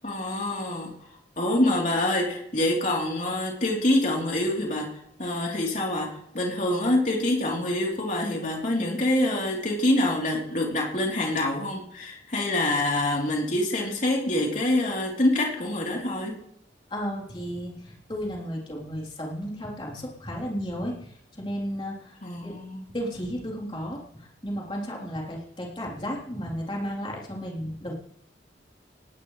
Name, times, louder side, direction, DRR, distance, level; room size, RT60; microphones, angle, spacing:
voice 1, 0.0-0.9 1.4-4.9 5.2-16.3 22.2-22.9, left 1 dB, 45° left, -1 dB, 3.6 m, -26 dB
voice 2, 16.9-22.6 22.9-28.0, equal, 25° left, -3 dB, 3.7 m, -34 dB
19.0 x 18.0 x 3.3 m, 0.73 s
head